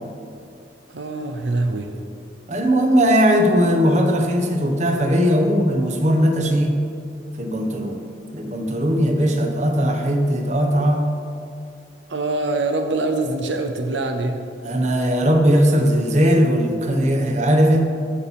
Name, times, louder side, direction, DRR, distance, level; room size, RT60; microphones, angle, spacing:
voice 1, 0.9-1.9 12.1-14.5, right 2 dB, 80° right, 6 dB, 0.6 m, -24 dB
voice 2, 2.5-6.7 7.4-8.0 8.3-11.0 14.6-17.8, equal, 40° right, 3 dB, 0.9 m, -18 dB
14.5 x 5.7 x 4.1 m, 2.4 s
head